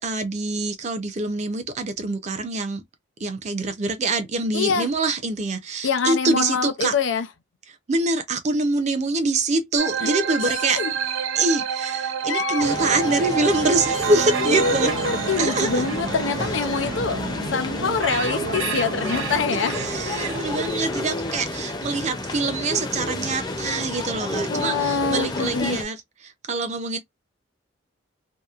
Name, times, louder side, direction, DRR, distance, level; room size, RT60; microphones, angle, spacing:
voice 1, 0.0-2.8 3.2-6.9 7.9-10.8 11.4-14.9 15.4-15.8 19.5-26.0 26.5-27.0, right 3 dB, 35° right, 0.5 m, -25 dB
voice 2, 4.5-4.9 5.8-7.3 10.0-10.1 10.4-10.9 12.3-12.7 14.4-17.2 17.5-19.8 24.5-25.8, left 5 dB, 70° left, 0.5 m, -25 dB
sound 1, 9.8-20.7, right 6 dB, 90° right, 0.5 m, -29 dB
sound 2, 12.6-25.8, left 2 dB, 20° left, 0.4 m, -31 dB
2.8 x 2.0 x 2.4 m
head